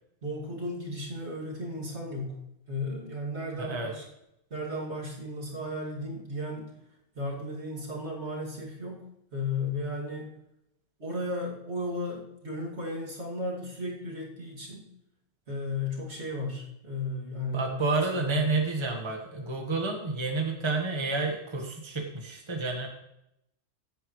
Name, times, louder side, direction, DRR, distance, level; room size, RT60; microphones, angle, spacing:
voice 1, 0.2-2.4 2.7-4.0 4.5-6.7 7.1-9.0 9.3-10.3 11.0-14.8 15.5-18.4, left 2 dB, 75° right, -3 dB, 2.8 m, -35 dB
voice 2, 3.6-3.9 17.5-22.9, right 3 dB, 25° right, 2 dB, 1.4 m, -30 dB
15.5 x 8.8 x 3.2 m, 0.82 s
omnidirectional pair, 1.2 m